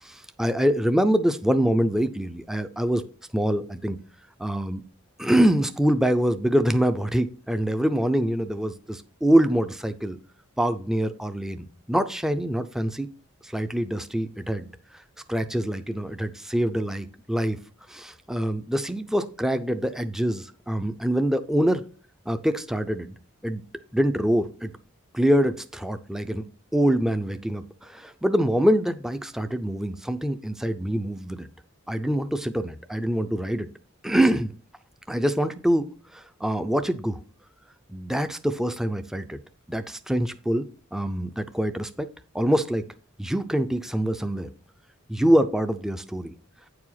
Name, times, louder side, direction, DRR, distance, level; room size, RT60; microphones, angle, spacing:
voice 1, 0.0-3.0 3.3-4.0 4.4-4.8 5.2-10.2 10.6-13.1 13.4-14.7 15.3-17.6 17.9-21.8 22.3-23.1 23.4-23.6 23.9-24.7 25.1-26.5 26.7-31.5 31.9-33.7 34.0-34.5 35.1-37.2 37.9-39.4 39.7-42.1 42.3-42.9 43.2-44.5 45.1-46.3, equal, ahead, 9 dB, 0.4 m, -25 dB
9.1 x 4.8 x 5.7 m, 0.40 s
head